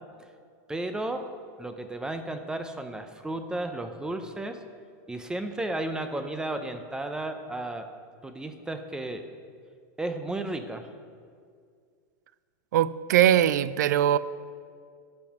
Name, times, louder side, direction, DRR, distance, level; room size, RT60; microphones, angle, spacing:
voice 1, 0.7-1.3 1.6-4.6 5.1-7.9 8.2-9.3 10.0-10.9, right 2 dB, 10° right, 0.5 m, -33 dB
voice 2, 12.7-14.2, right 11 dB, 85° right, 0.4 m, -21 dB
12.0 x 5.5 x 5.9 m
supercardioid pair, 135°, 9 cm